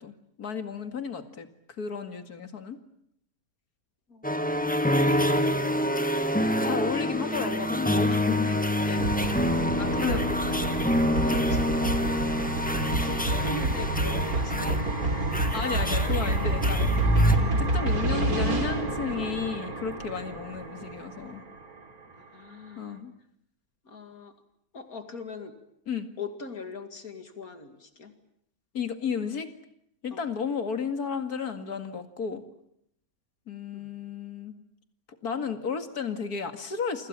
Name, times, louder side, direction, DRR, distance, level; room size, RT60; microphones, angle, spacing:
voice 1, 0.0-1.5 1.8-2.8 6.6-9.1 10.0-10.3 15.5-16.9 17.4-21.4 22.8-23.1 25.9-26.1 28.7-29.5 30.0-32.4 33.5-34.5 35.2-37.1, left 6 dB, 85° left, 8 dB, 2.7 m, -33 dB
sound 1, 4.2-17.4, equal, 5° left, 1.6 m, -26 dB
sound 2, 9.0-21.7, right 1 dB, 75° right, 3.8 m, -29 dB
voice 2, 9.5-10.4 10.6-12.1 12.9-15.2 22.3-22.8 23.9-24.3 24.7-25.5 26.2-28.1 30.1-30.2 33.7-33.8, left 3 dB, 70° left, 8 dB, 2.7 m, -40 dB
29.0 x 25.5 x 7.5 m, 0.75 s
omnidirectional pair, 1.6 m